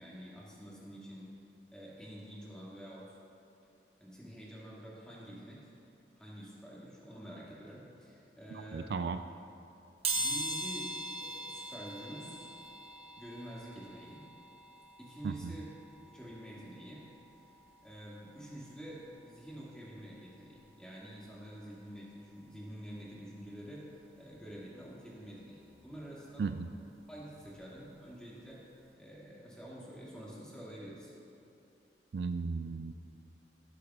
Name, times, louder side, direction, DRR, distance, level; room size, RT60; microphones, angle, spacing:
voice 1, 0.0-1.4 1.7-3.2 4.0-5.7 6.1-9.0 10.1-12.5 13.2-14.3 15.0-15.7 16.1-17.1 17.5-17.6 17.8-23.9 24.2-26.5 27.1-28.7 29.0-31.1, equal, 5° left, -7 dB, 2.0 m, -48 dB
voice 2, 8.5-9.2 15.2-15.5 26.4-26.7 32.1-32.9, right 5 dB, 65° right, 9 dB, 0.3 m, -35 dB
sound 1, 10.0-20.7 21.2-21.3 22.4-22.5 22.8-24.9 25.3-27.9 28.2-28.4 28.7-28.8, right 2 dB, 35° right, 1.1 m, -42 dB
17.5 x 8.3 x 2.4 m, 2.6 s
head